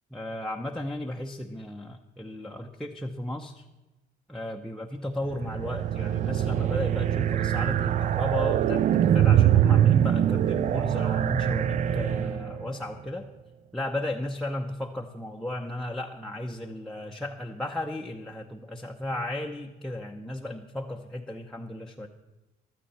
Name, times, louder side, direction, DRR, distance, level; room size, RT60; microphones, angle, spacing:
voice 1, 0.1-3.6 4.3-8.8 9.1-13.2 13.7-22.1, left 1 dB, 5° left, 3 dB, 0.8 m, -35 dB
sound 1, 5.3-12.7, right 10 dB, 45° right, 0.5 m, -23 dB
15.0 x 12.5 x 4.2 m, 1.1 s
cardioid pair, 110°, 17 cm